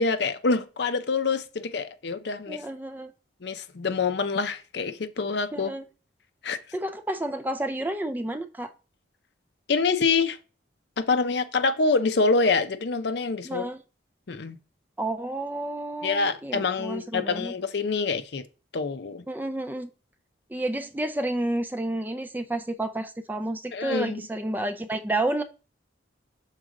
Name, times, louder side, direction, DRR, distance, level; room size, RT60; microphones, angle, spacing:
voice 1, 0.0-2.6 3.4-5.7 6.4-6.6 9.7-10.4 11.0-13.7 14.3-14.6 16.0-18.4 18.7-19.2 23.7-24.2, left 4 dB, 60° left, 0.5 m, -26 dB
voice 2, 2.5-3.1 5.5-5.8 6.7-8.7 13.4-13.8 15.0-17.5 19.3-19.9 20.5-25.4, right 1 dB, 10° right, 0.3 m, -30 dB
6.4 x 4.1 x 3.7 m
head